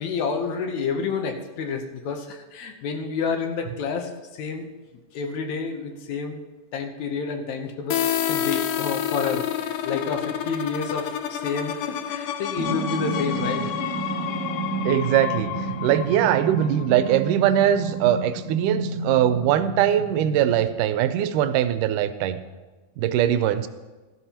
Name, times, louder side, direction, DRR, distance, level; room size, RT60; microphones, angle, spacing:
voice 1, 0.0-4.7 5.1-6.4 6.7-13.7, left 5 dB, 70° left, 5 dB, 2.2 m, -29 dB
sound 1, 7.9-17.5, left 10 dB, 85° left, 1.5 m, -29 dB
sound 2, 12.6-20.6, right 3 dB, 55° right, 1.7 m, -31 dB
voice 2, 14.9-15.5 15.8-22.4 23.0-23.7, right 11 dB, 85° right, 12 dB, 2.2 m, -21 dB
17.0 x 12.5 x 2.9 m, 1.3 s
omnidirectional pair, 3.6 m